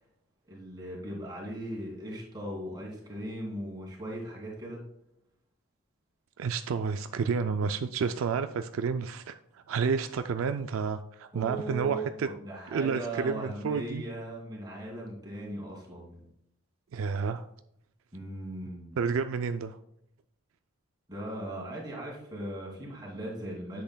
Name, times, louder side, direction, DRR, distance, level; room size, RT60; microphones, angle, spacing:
voice 1, 0.5-4.8 11.3-16.3 18.1-19.0 21.1-23.8, right 1 dB, 20° right, -4 dB, 2.6 m, -38 dB
voice 2, 6.4-12.3 12.7-14.0 16.9-17.5 19.0-19.8, right 5 dB, 70° right, 8 dB, 0.3 m, -30 dB
10.0 x 7.7 x 2.2 m, 0.76 s
head